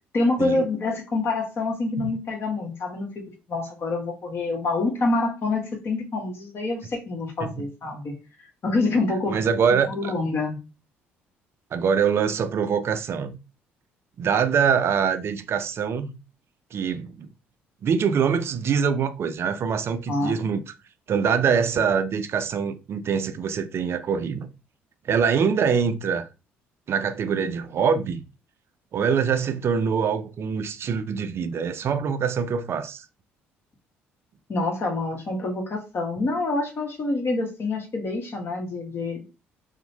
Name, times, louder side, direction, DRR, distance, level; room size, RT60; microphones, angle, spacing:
voice 1, 0.1-8.1 8.6-9.4 9.9-10.6 20.1-20.4 34.5-39.3, left 3 dB, 45° left, 1.0 m, -26 dB
voice 2, 9.3-10.1 11.7-13.4 14.2-16.1 16.7-17.3 17.8-20.6 21.1-24.5 25.1-26.3 26.9-28.2 28.9-33.1, right 6 dB, 50° right, 0.4 m, -24 dB
2.8 x 2.1 x 2.8 m
hypercardioid pair, 60°, 5 cm